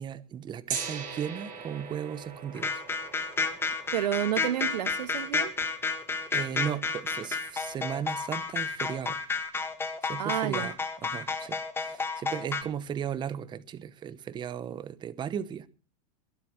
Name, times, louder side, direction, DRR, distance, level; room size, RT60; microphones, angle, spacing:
voice 1, 0.0-2.8 6.3-9.2 10.0-10.8 11.0-15.7, right 8 dB, 20° right, 1.0 m, -36 dB
Gong, 0.7-6.6, right 6 dB, 40° right, 6.1 m, -41 dB
sound 1, 2.5-12.6, left 4 dB, 10° left, 1.9 m, -31 dB
voice 2, 3.9-5.5 10.2-10.7, right 12 dB, 85° right, 1.6 m, -30 dB
22.0 x 7.8 x 7.6 m
supercardioid pair, 130°, 20 cm